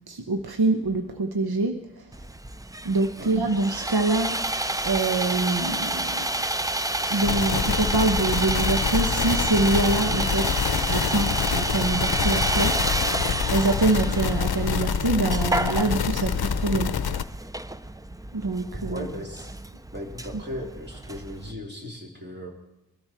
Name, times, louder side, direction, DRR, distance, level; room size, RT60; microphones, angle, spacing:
voice 1, 0.1-2.1 2.8-4.4 4.8-6.3 7.1-10.5 10.9-12.8 13.5-16.9 18.3-19.1, right 3 dB, 80° right, 5 dB, 1.1 m, -25 dB
Sawing, 2.1-21.5, right 1 dB, 10° right, 0.4 m, -29 dB
sound 1, 7.2-17.2, left 7 dB, 80° left, 0.7 m, -26 dB
voice 2, 18.9-19.5 19.9-22.5, equal, 30° right, -1 dB, 3.2 m, -37 dB
22.5 x 13.0 x 4.4 m, 0.94 s
wide cardioid pair, 80°, 37 cm